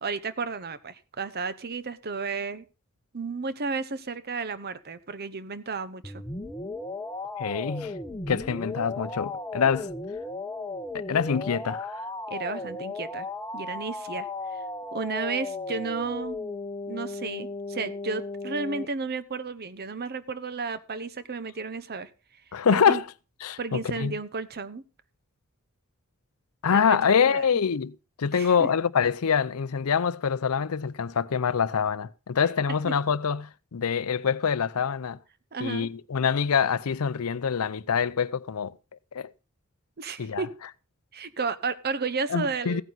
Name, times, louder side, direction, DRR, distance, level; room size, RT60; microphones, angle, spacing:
voice 1, 0.0-2.6 3.1-6.2 12.3-13.3 13.5-14.6 14.9-16.4 16.9-22.1 22.7-23.0 23.6-24.8 26.7-27.4 28.3-28.7 32.8-32.9 35.5-35.9 40.0-40.5 41.1-42.8, right 4 dB, 45° right, 1.0 m, -33 dB
sound 1, 6.0-18.9, left 2 dB, 15° left, 0.9 m, -35 dB
voice 2, 7.4-7.9 8.3-9.9 10.9-11.9 22.5-23.1 23.4-24.2 26.6-35.2 35.6-38.7 39.1-39.3 40.2-40.5 42.3-42.8, left 6 dB, 75° left, 0.5 m, -25 dB
15.5 x 9.2 x 4.0 m
head